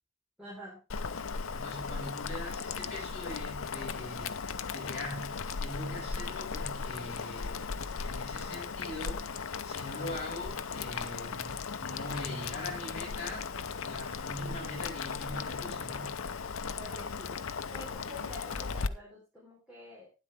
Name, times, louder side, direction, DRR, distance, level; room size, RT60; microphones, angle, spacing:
voice 1, 0.4-0.8 1.9-2.0 16.7-17.4 17.7-20.1, left 1 dB, 5° right, -7 dB, 4.6 m, -48 dB
Boiling, 0.9-18.9, left 5 dB, 75° left, 0.7 m, -37 dB
voice 2, 1.5-4.3 4.7-7.6 8.0-9.2 9.6-13.5 13.8-16.2, left 1 dB, 30° left, -4 dB, 7.7 m, -42 dB
12.0 x 9.9 x 3.6 m, 0.30 s
head